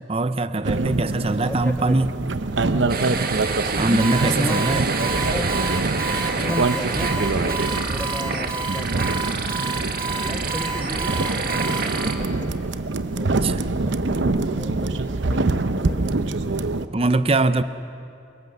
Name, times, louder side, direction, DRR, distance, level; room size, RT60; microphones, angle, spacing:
voice 1, 0.1-2.1 3.8-4.9 13.3-13.7 16.9-17.6, right 2 dB, 30° right, 0.6 m, -22 dB
sound 1, 0.6-16.9, right 3 dB, 75° right, 0.8 m, -25 dB
voice 2, 1.4-2.1 3.8-5.6 6.3-9.1 9.6-12.5 13.2-14.9 15.3-16.3, left 1 dB, 10° left, 0.5 m, -34 dB
sound 2, 2.9-12.1, right 4 dB, 50° right, 1.6 m, -28 dB
Alarm, 4.0-11.8, right 3 dB, 15° right, 1.7 m, -31 dB
24.5 x 22.0 x 6.7 m
head